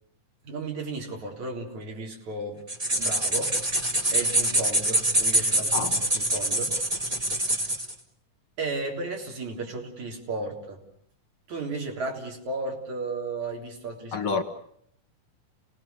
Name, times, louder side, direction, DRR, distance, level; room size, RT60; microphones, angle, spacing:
voice 1, 0.4-2.6 3.0-3.5 4.1-6.8 8.6-10.8 11.5-14.4, right 3 dB, 65° right, 5.1 m, -34 dB
sound 1, 2.7-7.9, right 1 dB, 15° right, 1.6 m, -25 dB
voice 2, 14.1-14.4, left 7 dB, 50° left, 2.0 m, -28 dB
30.0 x 19.0 x 6.9 m
omnidirectional pair, 3.6 m